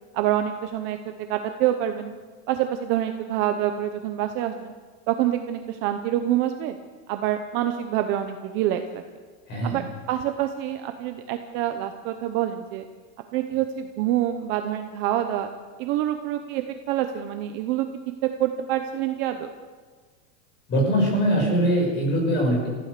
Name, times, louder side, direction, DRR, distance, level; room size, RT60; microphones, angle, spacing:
voice 1, 0.1-1.0 1.3-2.2 2.5-4.7 5.1-6.7 7.1-9.0 9.6-9.8 10.1-12.8 13.3-15.5 15.8-17.9 18.2-19.5, right 12 dB, 25° right, 7 dB, 0.7 m, -26 dB
voice 2, 9.5-9.9 13.5-13.6 20.7-22.7, equal, 25° left, 1 dB, 6.0 m, -22 dB
27.5 x 15.0 x 6.7 m, 1.5 s
supercardioid pair, 180°, 42 cm